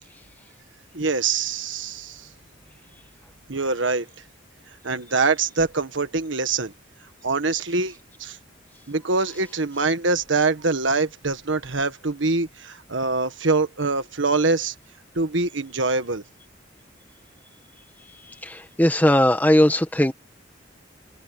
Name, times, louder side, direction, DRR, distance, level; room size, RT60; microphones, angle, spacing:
voice 1, 0.9-2.3 3.5-4.1 4.8-6.7 7.2-7.9 8.2-8.4 8.9-14.7 15.1-16.2, right 3 dB, 75° right, 1.6 m, -24 dB
voice 2, 18.4-20.1, left 1 dB, 10° left, 1.4 m, -18 dB
head